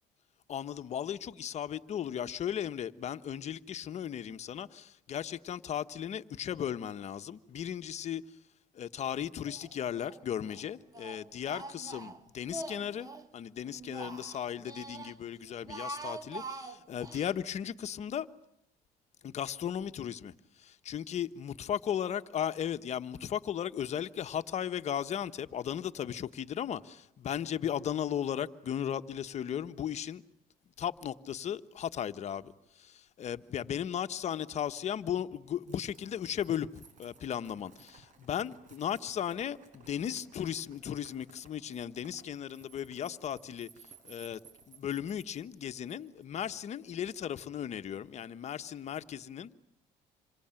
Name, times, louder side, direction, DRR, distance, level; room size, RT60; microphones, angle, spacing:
voice 1, 0.5-8.4 8.7-13.1 13.3-18.3 19.2-30.2 30.8-43.7 44.0-44.4 44.7-49.5, left 9 dB, 45° left, 1.3 m, -36 dB
Speech, 9.5-10.2 10.5-13.3 13.7-15.2 15.5-17.3, right 2 dB, 25° right, 2.0 m, -44 dB
sound 1, 35.7-46.2, right 5 dB, 55° right, 5.2 m, -58 dB
27.5 x 24.0 x 9.0 m
cardioid pair, 110°, 15 cm